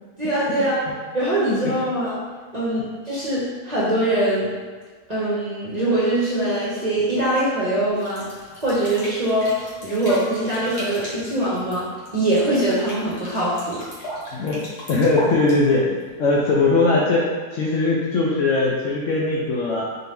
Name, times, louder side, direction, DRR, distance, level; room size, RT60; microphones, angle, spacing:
voice 1, 0.2-0.8 1.1-2.2 2.5-4.5 5.1-8.3 8.6-13.8, right 1 dB, 35° right, -9 dB, 0.7 m, -22 dB
sound 1, 7.9-16.2, equal, 45° left, 1.3 m, -37 dB
voice 2, 14.3-19.8, left 3 dB, 65° left, -4 dB, 0.8 m, -20 dB
3.9 x 2.8 x 3.4 m, 1.5 s
omnidirectional pair, 1.7 m